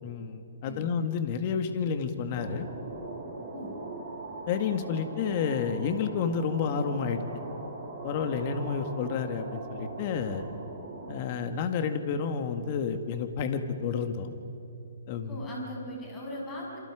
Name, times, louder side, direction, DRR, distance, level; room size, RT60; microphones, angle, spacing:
voice 1, 0.0-2.7 4.5-7.2 8.0-10.5 11.1-14.3 15.1-15.4, left 6 dB, 35° left, 7 dB, 1.8 m, -30 dB
sound 1, 2.3-11.1, right 2 dB, 15° right, 6.4 m, -40 dB
voice 2, 15.3-16.8, left 1 dB, 15° left, -3 dB, 7.0 m, -39 dB
28.0 x 27.5 x 5.0 m, 2.9 s
hypercardioid pair, 160°, 0 cm